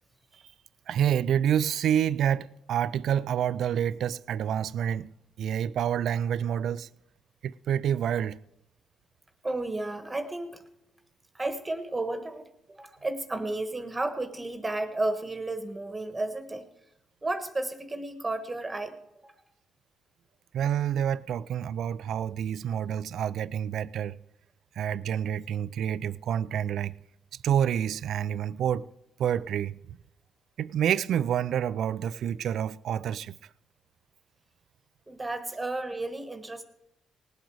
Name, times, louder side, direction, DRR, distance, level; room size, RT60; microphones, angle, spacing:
voice 1, 0.9-5.1 5.4-6.9 7.4-8.4 20.5-24.2 24.8-26.9 27.4-28.9 29.2-30.0 30.6-33.4, right 9 dB, 70° right, 0.4 m, -28 dB
voice 2, 9.4-10.6 11.3-16.7 17.2-18.9 19.2-19.3 35.1-36.6, right 2 dB, 15° right, 1.4 m, -32 dB
19.0 x 8.0 x 4.7 m
cardioid pair, 90°, 0 cm